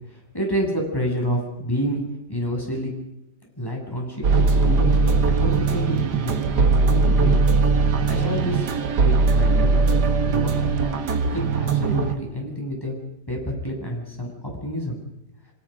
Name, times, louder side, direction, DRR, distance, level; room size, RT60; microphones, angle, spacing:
voice 1, 0.1-2.0 2.3-2.9 3.6-7.4 8.1-9.9 10.3-11.0 11.3-13.0 13.3-15.0, equal, 10° left, 0 dB, 7.6 m, -29 dB
sound 1, 4.2-12.1, right 4 dB, 75° right, 2.1 m, -20 dB
27.0 x 26.5 x 5.2 m, 0.82 s
omnidirectional pair, 1.8 m